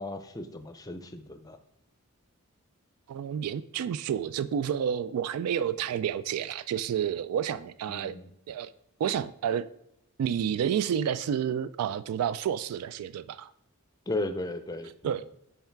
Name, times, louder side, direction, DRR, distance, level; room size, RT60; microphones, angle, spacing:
voice 1, 0.0-1.6 7.9-8.3 14.1-15.2, left 2 dB, 15° left, 0.5 m, -35 dB
voice 2, 3.1-8.1 8.5-8.7 9.0-9.7 10.2-13.5 15.0-15.3, right 8 dB, 85° right, 0.3 m, -30 dB
5.6 x 4.7 x 4.5 m
head